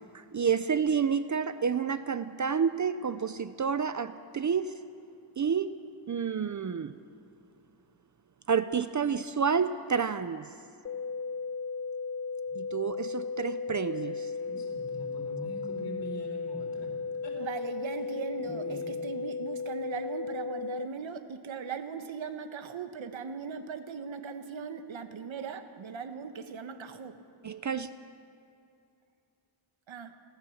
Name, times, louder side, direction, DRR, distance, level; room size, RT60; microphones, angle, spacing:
voice 1, 0.1-4.7 5.4-5.7 6.1-6.9 8.5-10.5 12.5-14.3 27.4-27.9, right 6 dB, 40° right, 12 dB, 0.5 m, -29 dB
sound 1, 10.9-20.9, left 4 dB, 30° left, 0.4 m, -35 dB
voice 2, 14.4-16.9 17.2-17.4 18.4-18.9, equal, 60° left, 0 dB, 4.7 m, -43 dB
voice 3, 17.4-27.2 29.9-30.1, right 6 dB, 75° right, 9 dB, 1.3 m, -39 dB
29.5 x 12.5 x 7.2 m, 2.5 s
wide cardioid pair, 140°, 47 cm